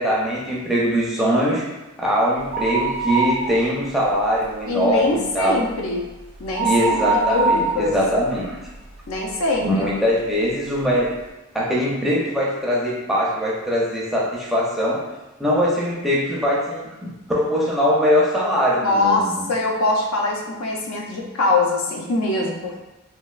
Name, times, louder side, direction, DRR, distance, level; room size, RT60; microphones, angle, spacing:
voice 1, 0.0-1.6 2.0-5.6 6.6-8.6 9.6-11.1 11.5-15.0 15.4-19.5, equal, ahead, -6 dB, 0.5 m, -21 dB
sound 1, 2.4-4.0 4.3-4.4 4.9-9.3 9.8-9.9 10.7-10.8 11.0-11.1, right 3 dB, 85° right, 0.7 m, -24 dB
voice 2, 4.7-6.1 6.4-7.9 9.1-9.8 18.8-22.8, left 2 dB, 80° left, 0 dB, 0.5 m, -23 dB
3.2 x 2.3 x 2.3 m, 1.0 s
head